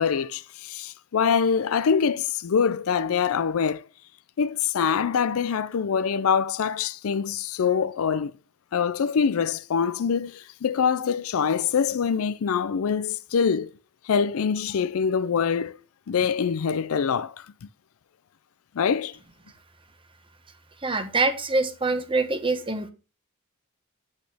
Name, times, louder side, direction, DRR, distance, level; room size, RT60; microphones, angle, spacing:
voice 1, 0.0-3.8 4.4-8.3 8.7-13.7 14.0-15.8 16.1-17.5 18.8-19.2, left 6 dB, 70° left, 0.4 m, -24 dB
voice 2, 20.8-22.9, right 3 dB, 25° right, 0.9 m, -25 dB
8.4 x 8.0 x 3.4 m
head